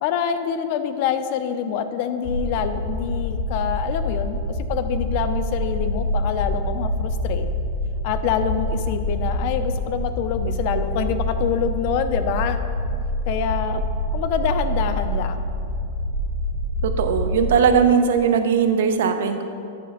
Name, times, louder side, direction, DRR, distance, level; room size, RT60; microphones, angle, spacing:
voice 1, 0.0-7.5 8.0-12.6 13.3-13.8 14.1-15.5, left 8 dB, 40° left, 10 dB, 0.4 m, -26 dB
sound 1, 2.2-17.6, left 1 dB, 80° left, 1.5 m, -26 dB
voice 2, 16.8-19.4, right 6 dB, 70° right, 8 dB, 0.6 m, -19 dB
9.3 x 3.2 x 6.5 m, 2.5 s
supercardioid pair, 170°, 0 cm